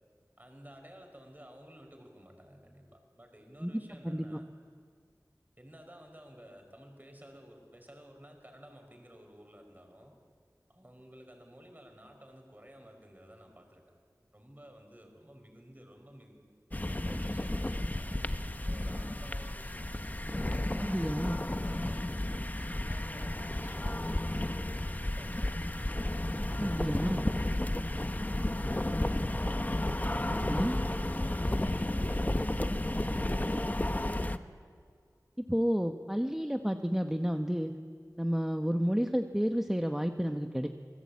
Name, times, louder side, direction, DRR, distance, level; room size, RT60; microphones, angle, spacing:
voice 1, 0.4-4.6 5.6-10.1 10.7-13.8 14.3-16.4 16.8-18.2 18.6-22.0 22.5-24.4 24.8-25.5 31.2-33.1, equal, 30° right, 4 dB, 5.2 m, -54 dB
voice 2, 4.0-4.4 20.8-21.4 26.6-27.2 30.4-30.8 35.5-37.7 38.2-40.7, equal, 5° right, 5 dB, 1.1 m, -31 dB
sound 1, 16.7-34.4, left 1 dB, 25° left, 1.0 m, -32 dB
27.0 x 19.5 x 8.6 m, 2.1 s
wide cardioid pair, 50°, 7 cm